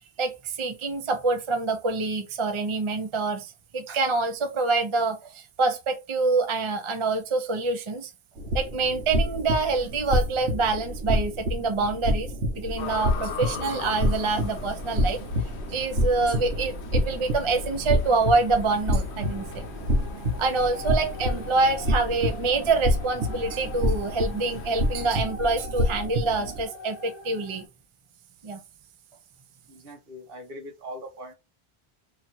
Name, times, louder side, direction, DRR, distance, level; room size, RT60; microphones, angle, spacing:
voice 1, 0.2-8.1 8.5-12.3 12.5-15.2 15.7-19.6 20.4-27.7 28.4-28.6, right 3 dB, 35° right, 0.6 m, -26 dB
sound 1, 8.4-26.6, equal, 85° right, 1.2 m, -28 dB
sound 2, 12.8-25.1, left 8 dB, 90° left, 0.9 m, -41 dB
sound 3, 19.2-27.7, left 2 dB, 30° left, 0.8 m, -43 dB
voice 2, 29.7-31.3, equal, 60° right, 1.1 m, -41 dB
2.9 x 2.6 x 4.4 m
omnidirectional pair, 1.1 m